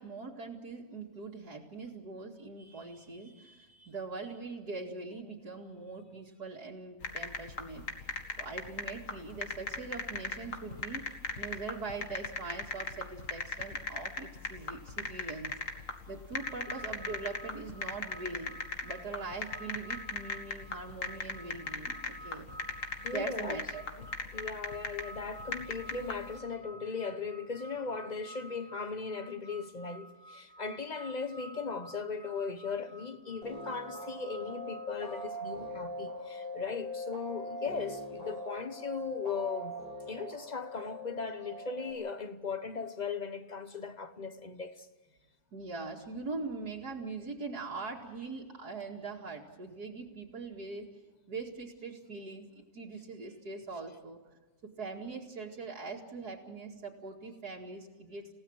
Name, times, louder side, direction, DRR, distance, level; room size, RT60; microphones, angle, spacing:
voice 1, 0.0-7.8 8.4-15.5 16.1-22.5 23.1-23.8 45.5-50.9 51.3-54.2 54.6-58.3, right 4 dB, 90° right, 2.7 m, -42 dB
sound 1, 7.0-26.4, left 4 dB, 55° left, 2.2 m, -39 dB
sound 2, 16.4-35.3, right 1 dB, 30° right, 3.0 m, -52 dB
voice 2, 23.0-23.6 24.0-24.1 24.3-39.8 40.1-44.9, left 5 dB, 30° left, 1.1 m, -38 dB
sound 3, 33.4-41.9, equal, 75° left, 5.4 m, -42 dB
29.0 x 17.0 x 6.5 m
omnidirectional pair, 1.6 m